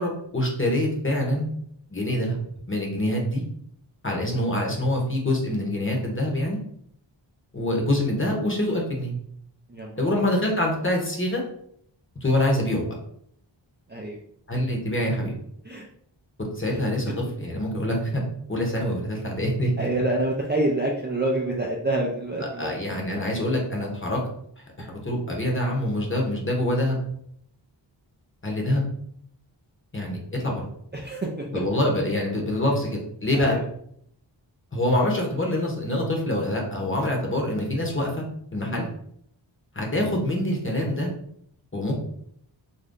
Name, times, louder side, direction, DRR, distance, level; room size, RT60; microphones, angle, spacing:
voice 1, 0.0-1.5 1.9-2.4 2.7-3.4 4.0-6.6 7.5-9.1 10.0-11.4 12.2-12.9 14.5-15.3 16.6-18.2 18.5-19.9 22.6-24.2 24.8-27.0 28.4-28.8 29.9-30.6 31.5-33.6 34.7-38.2 38.5-38.9 39.7-41.1 41.7-42.0, left 1 dB, 25° left, -1 dB, 0.9 m, -25 dB
voice 2, 9.7-10.2 13.9-14.2 15.6-15.9 16.7-16.8 19.8-22.7 30.9-31.5 33.3-33.6 38.7-38.9, right 2 dB, 25° right, -2 dB, 0.4 m, -27 dB
2.6 x 2.2 x 3.6 m, 0.68 s
wide cardioid pair, 50°, 47 cm